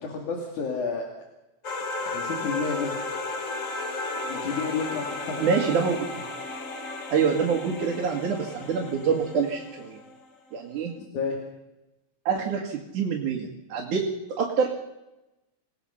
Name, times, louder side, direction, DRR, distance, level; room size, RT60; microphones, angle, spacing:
voice 1, 0.0-1.1 2.0-3.0 4.3-5.4 11.1-11.4, left 5 dB, 80° left, 1 dB, 3.9 m, -30 dB
sound 1, 1.6-10.2, left 2 dB, 40° left, 1.3 m, -34 dB
voice 2, 5.4-6.2 7.1-10.0 10.5-10.9 12.3-14.1 14.4-14.7, right 6 dB, 85° right, -1 dB, 3.6 m, -26 dB
28.0 x 18.5 x 5.8 m, 0.98 s
omnidirectional pair, 3.4 m